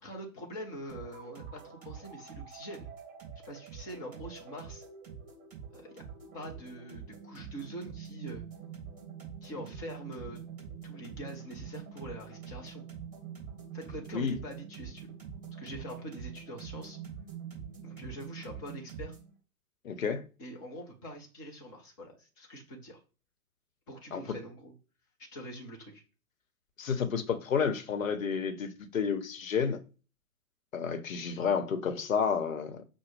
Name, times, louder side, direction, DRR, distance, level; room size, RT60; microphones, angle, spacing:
voice 1, 0.0-2.9 3.4-4.8 5.7-6.0 6.3-8.4 9.4-10.4 10.8-12.8 13.7-15.1 15.6-17.0 17.8-19.1 20.4-23.0 23.9-24.7 25.2-26.0, equal, 15° left, 0.6 m, -44 dB
sound 1, 0.9-19.3, right 7 dB, 20° right, 2.3 m, -45 dB
voice 2, 19.8-20.2 24.1-24.2 26.8-29.8 30.7-32.8, left 6 dB, 60° left, 0.9 m, -30 dB
5.9 x 2.1 x 3.3 m
figure-of-eight pair, 120°, 46 cm